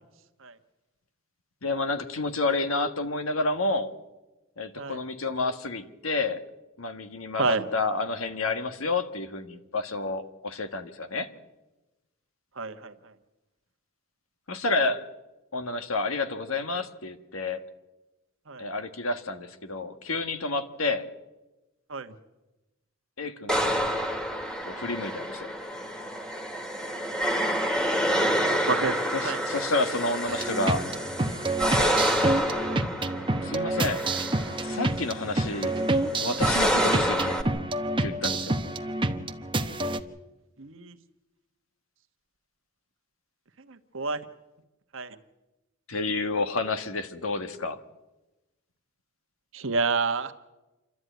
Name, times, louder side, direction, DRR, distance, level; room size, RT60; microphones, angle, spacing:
voice 1, 1.6-3.9 4.6-6.4 6.8-11.3 14.5-15.0 15.5-17.6 18.6-21.0 23.2-24.0 24.6-25.5 29.1-30.9 33.4-34.0 34.6-35.7 36.2-37.4 38.0-38.5 45.9-47.8, left 3 dB, 75° left, 9 dB, 1.6 m, -30 dB
voice 2, 12.6-12.9 18.5-18.6 21.9-22.1 26.8-27.4 28.7-29.0 29.2-29.4 31.7-32.0 40.6-41.0 43.7-44.2 44.9-45.2 49.5-50.3, right 4 dB, 65° right, 9 dB, 1.3 m, -29 dB
sound 1, 23.5-37.4, equal, 5° left, 2.0 m, -28 dB
sound 2, 30.3-40.0, right 2 dB, 25° right, 1.0 m, -28 dB
28.0 x 12.5 x 9.3 m, 1.1 s
head